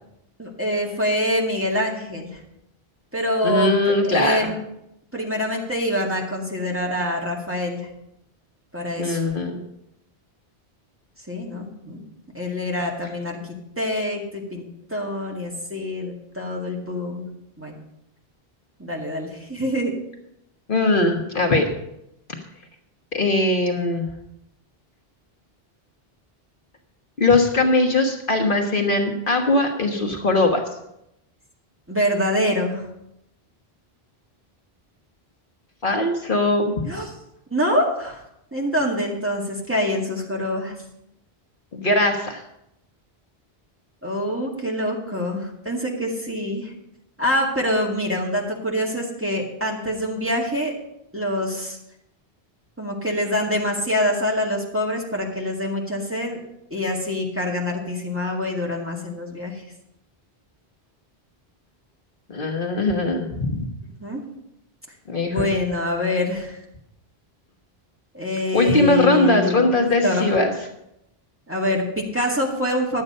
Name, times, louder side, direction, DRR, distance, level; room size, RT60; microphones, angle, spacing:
voice 1, 0.4-2.4 3.1-4.6 5.1-7.9 8.7-9.3 11.3-12.0 12.3-13.4 13.8-14.6 14.9-17.3 17.6-17.7 18.8-20.0 31.9-32.9 36.9-37.1 37.5-38.2 38.5-40.7 44.0-46.7 47.2-50.7 51.1-51.8 52.8-56.4 56.7-59.6 64.0-64.2 65.3-66.6 68.1-69.7 70.0-70.4 71.5-73.0, left 1 dB, 10° right, -3 dB, 2.0 m, -25 dB
voice 2, 3.4-4.4 9.0-9.6 20.7-21.7 23.1-24.1 27.2-30.6 35.8-36.7 41.7-42.4 62.3-63.7 65.1-65.5 68.5-70.5, left 2 dB, 55° left, 2 dB, 1.4 m, -20 dB
11.5 x 8.7 x 5.4 m, 0.82 s
omnidirectional pair, 1.1 m